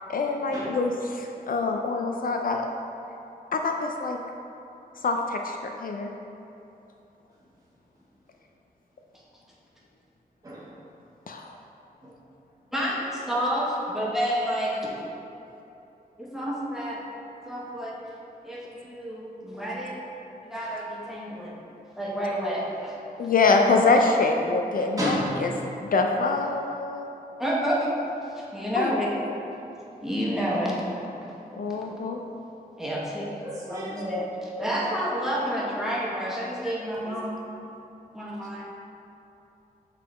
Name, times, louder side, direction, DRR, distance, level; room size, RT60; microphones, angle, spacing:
voice 1, 0.1-2.6 3.5-4.2 5.0-6.1 11.3-11.6 23.2-25.5 25.9-27.1 28.8-28.9 31.6-32.2, left 3 dB, 65° left, 3 dB, 0.4 m, -25 dB
voice 2, 10.4-10.7 12.0-12.1 25.0-25.5 33.4-34.0 34.8-34.9 35.2-35.5 37.1-37.2, equal, 20° right, -6 dB, 1.2 m, -32 dB
voice 3, 13.3-14.9 16.2-17.0 17.5-17.9 18.4-20.0 20.4-21.5 22.0-22.9 27.4-27.9 28.3-29.1 30.0-30.8 31.6-31.8 32.8-33.3 33.7-37.4 38.1-38.6, equal, 5° right, -5 dB, 0.9 m, -29 dB
7.4 x 3.7 x 4.2 m, 2.9 s
wide cardioid pair, 155°, 16 cm